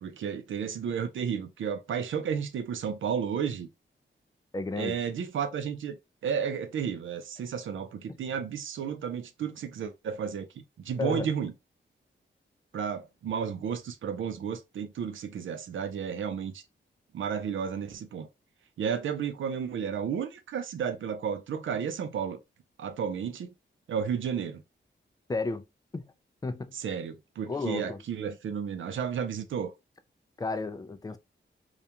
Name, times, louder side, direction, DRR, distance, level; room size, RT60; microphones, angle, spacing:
voice 1, 0.0-3.7 4.8-6.0 6.2-11.5 12.7-16.6 17.1-18.3 18.8-22.4 22.8-23.5 23.9-24.6 26.8-29.7, right 7 dB, 75° right, 0.4 m, -32 dB
voice 2, 4.5-5.0 11.0-11.3 25.3-25.6 25.9-26.1 26.4-26.8 27.5-28.0 30.4-31.2, left 3 dB, 20° left, 0.3 m, -32 dB
2.4 x 2.1 x 2.8 m
wide cardioid pair, 90°, 20 cm